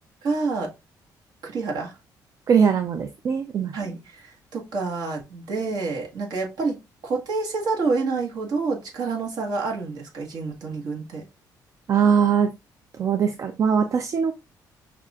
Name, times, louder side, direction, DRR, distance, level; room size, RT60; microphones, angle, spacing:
voice 1, 0.2-0.7 1.4-1.9 3.7-6.8 7.0-11.2, right 4 dB, 60° right, 1.4 m, -28 dB
voice 2, 2.5-3.7 11.9-12.5 12.9-14.3, right 6 dB, 45° right, 0.4 m, -21 dB
5.8 x 2.4 x 2.4 m
cardioid pair, 120°, 8 cm